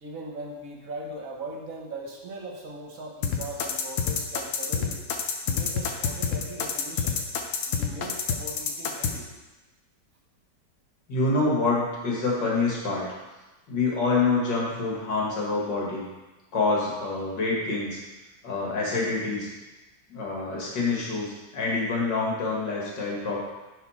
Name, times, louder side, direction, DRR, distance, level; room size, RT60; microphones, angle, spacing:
voice 1, 0.0-5.1 5.5-7.2 7.7-9.3, right 2 dB, 55° right, 0 dB, 1.2 m, -39 dB
sound 1, 3.2-9.1, left 7 dB, 60° left, 0.9 m, -27 dB
voice 2, 11.1-13.0 13.7-16.0 16.5-18.0 18.4-19.5 20.1-23.4, left 3 dB, 80° left, -4 dB, 2.4 m, -26 dB
10.5 x 4.1 x 4.2 m, 1.1 s
omnidirectional pair, 1.9 m